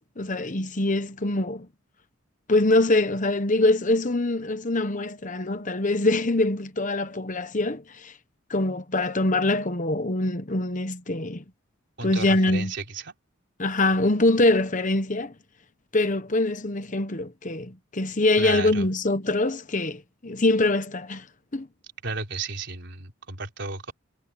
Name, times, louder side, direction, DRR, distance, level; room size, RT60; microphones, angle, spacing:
voice 1, 0.0-1.7 2.5-8.1 8.5-11.4 12.0-12.7 13.6-15.3 15.9-21.3 21.5-21.7, left 2 dB, 35° left, 1.1 m, -24 dB
voice 2, 12.0-13.2 18.4-18.9 22.0-23.9, right 3 dB, 55° right, 4.0 m, -33 dB
head